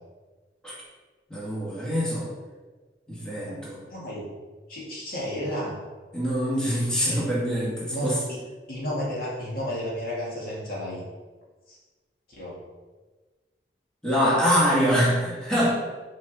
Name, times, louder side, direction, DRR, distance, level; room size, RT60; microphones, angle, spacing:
voice 1, 1.3-2.3 3.1-3.8 6.1-8.2 14.0-15.7, equal, 5° left, -8 dB, 1.7 m, -24 dB
voice 2, 3.5-4.3 4.7-5.8 7.1-7.3 7.8-8.4 8.7-11.0 11.7-11.8 12.3-12.7, equal, 55° left, -6 dB, 2.0 m, -32 dB
6.2 x 4.1 x 4.1 m, 1.3 s
head